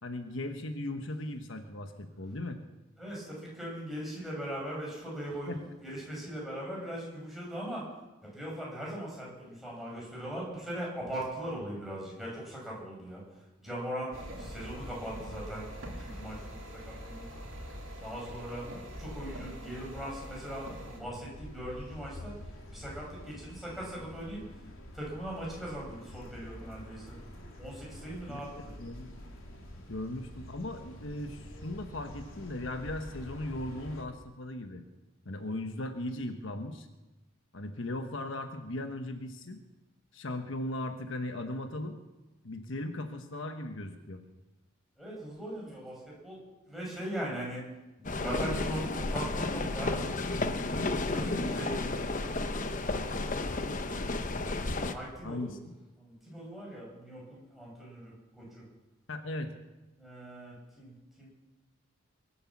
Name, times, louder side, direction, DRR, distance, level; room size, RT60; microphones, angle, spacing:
voice 1, 0.0-2.6 5.5-5.6 28.3-28.4 28.8-29.1 29.9-34.8 35.2-36.9 37.5-39.6 40.1-42.0 42.4-44.2 55.2-55.6 59.1-59.5, left 1 dB, 70° left, 6 dB, 1.2 m, -37 dB
voice 2, 3.0-7.9 8.2-17.3 18.0-27.2 27.6-28.7 45.0-46.4 46.6-47.7 48.0-50.0 51.0-52.8 53.1-54.5 54.9-55.5 56.0-58.6 60.0-61.3, right 1 dB, ahead, -5 dB, 6.3 m, -40 dB
sound 1, 14.1-34.0, equal, 90° left, 3.2 m, -47 dB
sound 2, 14.1-21.0, equal, 70° right, 3.1 m, -45 dB
sound 3, 48.0-54.9, left 2 dB, 40° left, 0.9 m, -32 dB
23.5 x 8.5 x 7.2 m, 1.1 s
head